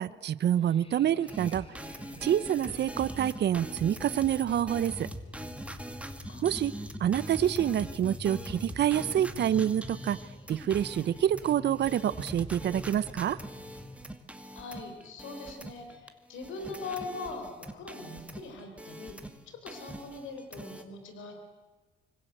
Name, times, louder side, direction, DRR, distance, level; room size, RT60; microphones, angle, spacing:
voice 1, 0.0-1.7 2.2-5.1 6.4-10.2 10.5-13.4, right 10 dB, 60° right, 17 dB, 0.8 m, -27 dB
sound 1, 0.5-14.0, left 1 dB, 25° left, 3.1 m, -46 dB
sound 2, 1.3-16.1 16.3-19.4 19.7-20.8, right 1 dB, 5° right, 2.3 m, -43 dB
voice 2, 14.4-21.4, left 3 dB, 80° left, 5 dB, 4.7 m, -41 dB
26.0 x 24.5 x 7.8 m, 1.3 s
cardioid pair, 90°, 20 cm